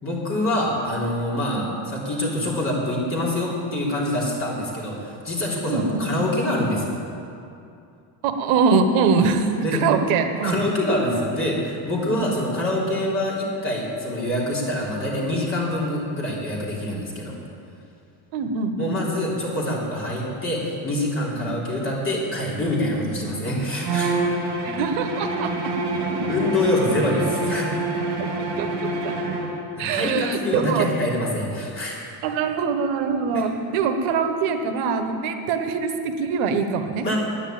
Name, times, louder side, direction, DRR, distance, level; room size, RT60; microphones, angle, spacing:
voice 1, 0.0-6.9 9.6-9.9 10.4-17.4 18.8-24.1 26.3-27.7 29.7-32.0 37.0-37.2, left 1 dB, 25° left, -5 dB, 3.2 m, -25 dB
voice 2, 5.7-6.0 8.2-10.6 12.1-12.2 18.3-18.9 21.4-21.6 23.0-23.1 24.6-25.5 28.2-28.3 28.6-28.7 29.0-29.1 29.8-30.9 32.2-37.0, right 5 dB, 70° right, 7 dB, 1.2 m, -23 dB
Bowed string instrument, 23.8-29.6, right 2 dB, 55° right, 2.9 m, -26 dB
9.8 x 9.7 x 8.7 m, 2.6 s
cardioid pair, 160°, 50 cm